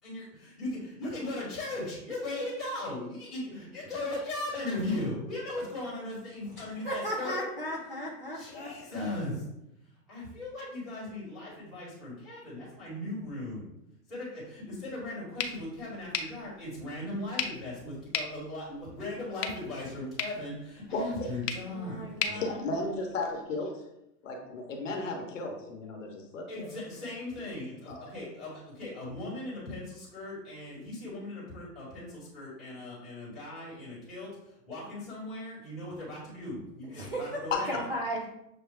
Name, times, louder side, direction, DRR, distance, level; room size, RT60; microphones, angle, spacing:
voice 1, 0.0-7.5 8.3-9.5 10.1-13.7 14.1-22.4 26.5-37.8, left 2 dB, ahead, -12 dB, 1.2 m, -38 dB
voice 2, 6.8-8.7 21.7-22.7 37.0-37.4 37.7-38.3, right 1 dB, 40° right, -4 dB, 0.4 m, -35 dB
sound 1, 15.4-23.4, left 7 dB, 75° left, 0.8 m, -39 dB
voice 3, 22.3-23.7 24.2-26.7 27.9-28.1 37.5-37.6, left 3 dB, 50° left, 2 dB, 0.9 m, -34 dB
6.8 x 2.3 x 3.3 m, 0.83 s
hypercardioid pair, 180°, 50 cm